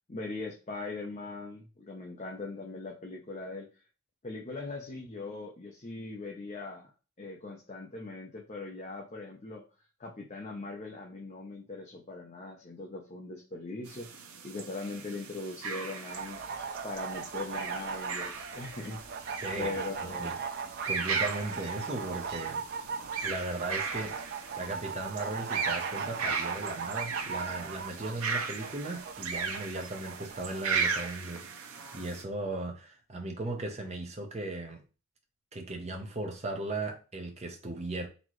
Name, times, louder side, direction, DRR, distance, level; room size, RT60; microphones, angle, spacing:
voice 1, 0.1-3.7 4.2-6.9 7.2-9.6 10.0-19.0 19.6-20.3, left 3 dB, 30° left, 0.6 m, -40 dB
sound 1, 13.8-32.2, right 5 dB, 75° right, 0.7 m, -37 dB
sound 2, 16.1-31.1, right 5 dB, 45° right, 0.4 m, -39 dB
voice 2, 19.4-20.3 20.9-22.6 23.2-34.8 35.5-38.1, right 2 dB, 30° right, 0.8 m, -37 dB
4.0 x 3.0 x 3.0 m
head